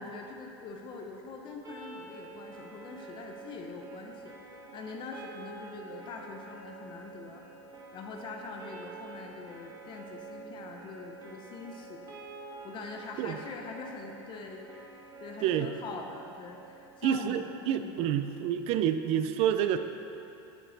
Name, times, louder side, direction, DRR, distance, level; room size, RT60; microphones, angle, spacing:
voice 1, 0.0-7.4 7.9-12.1 12.4-14.7 15.2-18.0, left 4 dB, 35° left, 2 dB, 0.6 m, -43 dB
sound 1, 1.6-17.7, right 4 dB, 25° right, 1.1 m, -48 dB
voice 2, 15.4-15.7 17.0-19.8, right 10 dB, 50° right, 10 dB, 0.4 m, -28 dB
6.4 x 6.0 x 4.0 m, 2.8 s
supercardioid pair, 125°, 13 cm